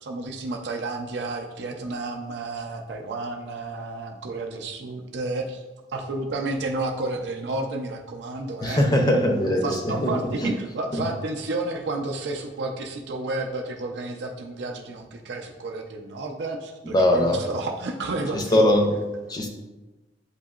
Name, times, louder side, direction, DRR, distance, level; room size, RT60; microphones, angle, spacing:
voice 1, 0.0-5.6 5.9-8.8 9.4-18.7, right 2 dB, 70° right, 2 dB, 0.5 m, -31 dB
voice 2, 8.6-10.1 10.4-10.5 10.9-11.0 16.8-17.4 18.3-18.9 19.3-19.5, left 1 dB, 25° left, 3 dB, 0.5 m, -21 dB
8.1 x 2.8 x 2.4 m, 1.1 s
head